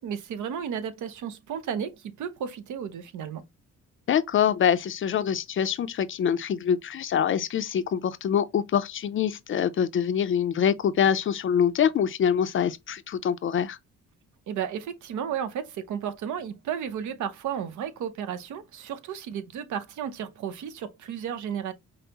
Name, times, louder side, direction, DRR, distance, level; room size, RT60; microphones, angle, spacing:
voice 1, 0.0-3.4 14.5-21.7, right 8 dB, 75° right, 0.7 m, -33 dB
voice 2, 4.1-13.8, left 8 dB, 45° left, 0.4 m, -25 dB
5.3 x 2.0 x 2.8 m
cardioid pair, 90°, 30 cm